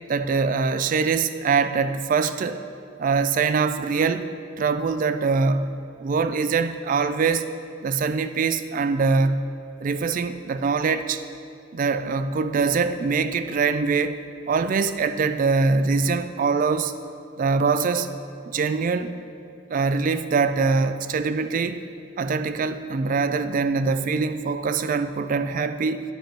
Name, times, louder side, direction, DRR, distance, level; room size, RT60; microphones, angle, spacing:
voice 1, 0.1-2.6 3.0-4.3 4.6-7.5 7.8-9.5 9.8-11.2 11.7-16.9 17.4-18.1 18.5-19.1 19.7-21.8 22.2-26.0, right 4 dB, 45° right, 11 dB, 0.3 m, -23 dB
10.5 x 5.4 x 4.4 m, 2.6 s
head